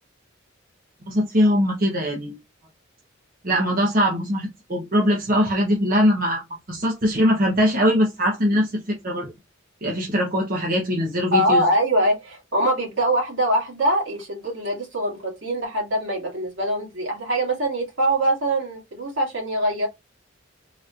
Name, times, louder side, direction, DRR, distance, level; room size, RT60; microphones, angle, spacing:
voice 1, 1.1-2.3 3.4-6.4 6.7-9.3 9.8-11.6, equal, 45° right, 1.0 m, -21 dB
voice 2, 11.3-19.9, right 1 dB, 75° right, 2.3 m, -23 dB
4.0 x 3.0 x 2.4 m
head